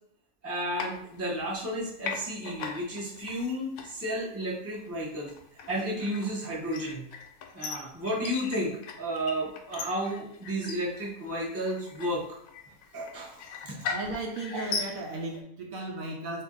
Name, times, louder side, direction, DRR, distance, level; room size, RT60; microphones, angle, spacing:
voice 1, 0.4-5.3 5.7-7.1 7.5-12.2 12.9-13.8, equal, 15° right, -5 dB, 0.6 m, -32 dB
sound 1, 0.7-1.7 2.0-15.4, left 5 dB, 85° left, 1.1 m, -40 dB
voice 2, 13.9-16.4, right 2 dB, 70° right, 1 dB, 1.0 m, -35 dB
2.7 x 2.6 x 3.7 m, 0.68 s
omnidirectional pair, 1.5 m